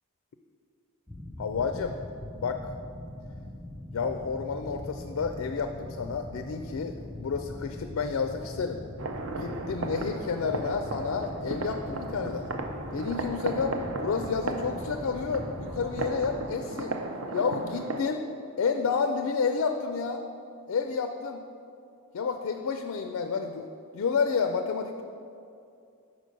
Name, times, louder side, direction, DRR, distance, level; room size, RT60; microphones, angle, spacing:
sound 1, 1.1-16.6, left 1 dB, 5° left, 0.4 m, -41 dB
voice 1, 1.4-1.9 2.4-2.6 3.9-8.8 9.4-12.6 12.9-16.9 17.3-18.2 18.6-20.2 20.7-21.4 22.1-23.7 23.9-25.0, left 5 dB, 70° left, 6 dB, 0.4 m, -30 dB
sound 2, 9.0-18.0, right 2 dB, 65° right, 0.5 m, -35 dB
5.3 x 4.8 x 6.3 m, 2.5 s
head